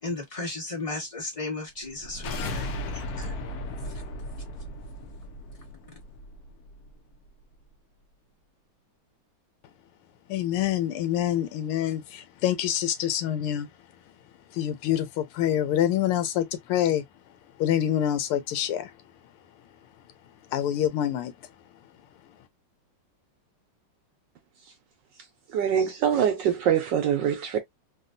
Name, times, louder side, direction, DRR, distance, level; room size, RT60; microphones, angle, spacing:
voice 1, 0.0-3.3 3.8-4.0, left 2 dB, 25° left, 0.9 m, -35 dB
sound 1, 1.8-6.9, left 1 dB, 70° left, 0.9 m, -36 dB
voice 2, 10.3-13.7 14.5-17.0 17.6-18.9 20.5-21.3, left 11 dB, 85° left, 1.6 m, -26 dB
voice 3, 25.5-27.6, right 8 dB, 70° right, 1.1 m, -24 dB
3.9 x 2.3 x 2.5 m
omnidirectional pair, 2.4 m